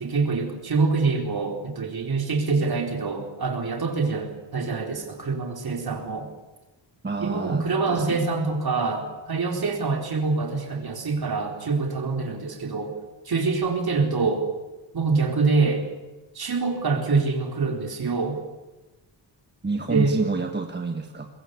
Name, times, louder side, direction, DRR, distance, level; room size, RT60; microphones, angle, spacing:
voice 1, 0.0-6.3 7.2-12.9 13.2-14.5 14.9-15.8 16.3-18.4 19.9-20.1, right 4 dB, 50° right, 2 dB, 4.3 m, -25 dB
voice 2, 7.0-8.3 19.6-21.3, right 3 dB, 25° right, 4 dB, 1.4 m, -29 dB
23.5 x 21.5 x 8.3 m, 1.1 s
wide cardioid pair, 170°, 46 cm